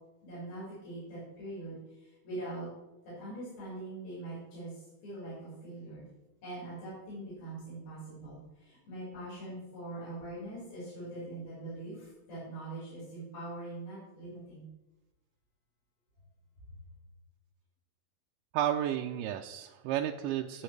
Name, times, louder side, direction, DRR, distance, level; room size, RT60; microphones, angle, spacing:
voice 1, 0.2-2.7 3.2-6.0 6.4-14.7, right 2 dB, 85° left, -10 dB, 6.9 m, -43 dB
voice 2, 18.5-20.6, right 11 dB, 80° right, 3 dB, 2.0 m, -32 dB
20.5 x 7.7 x 3.3 m, 1.0 s
omnidirectional pair, 4.1 m